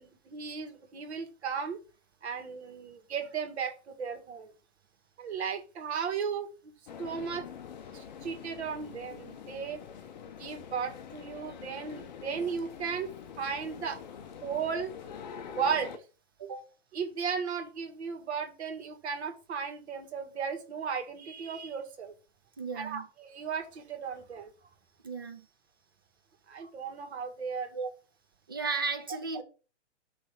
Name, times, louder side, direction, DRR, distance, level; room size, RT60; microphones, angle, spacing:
voice 1, 0.0-1.8 2.2-4.5 5.2-6.5 7.0-7.4 7.9-9.8 10.4-13.1 13.4-14.0 14.4-14.9 15.5-16.0 16.9-22.1 22.7-24.5 26.5-27.7, right 6 dB, 65° right, 2.0 m, -35 dB
sound 1, 6.9-16.0, left 8 dB, 40° left, 0.7 m, -45 dB
voice 2, 22.6-23.1 25.0-25.5 27.7-27.9 28.5-29.4, right 4 dB, 20° right, 0.3 m, -34 dB
6.3 x 3.4 x 5.9 m
hypercardioid pair, 165°, 36 cm